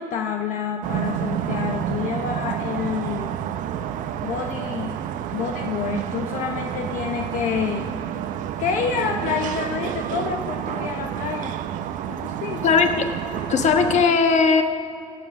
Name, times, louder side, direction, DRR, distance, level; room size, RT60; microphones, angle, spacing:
voice 1, 0.0-3.3 4.2-5.0 5.3-7.9 8.6-11.5 12.1-12.7, left 7 dB, 80° left, 3 dB, 0.8 m, -28 dB
sound 1, 0.8-14.1, right 10 dB, 85° right, 0.6 m, -29 dB
voice 2, 12.6-13.1 13.5-14.6, left 5 dB, 60° left, 6 dB, 1.3 m, -18 dB
21.5 x 7.5 x 6.1 m, 2.4 s
cardioid pair, 100°, 13 cm